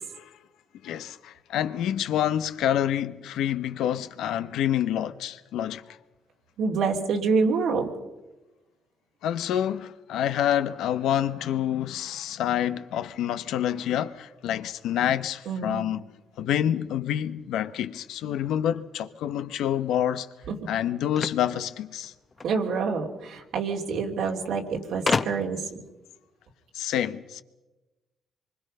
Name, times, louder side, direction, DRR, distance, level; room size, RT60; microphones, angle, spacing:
voice 1, 0.8-5.8 9.2-16.0 16.4-20.3 20.7-22.1 26.7-27.4, left 10 dB, 85° left, 1.0 m, -27 dB
voice 2, 6.6-7.9 15.5-15.8 20.5-20.7 22.4-25.7, right 5 dB, 80° right, 3.0 m, -27 dB
sound 1, 21.1-22.6 23.7-23.8 24.0-24.1 25.1-25.7, left 4 dB, 35° left, 1.0 m, -29 dB
25.5 x 24.5 x 5.5 m
cardioid pair, 90°, 0 cm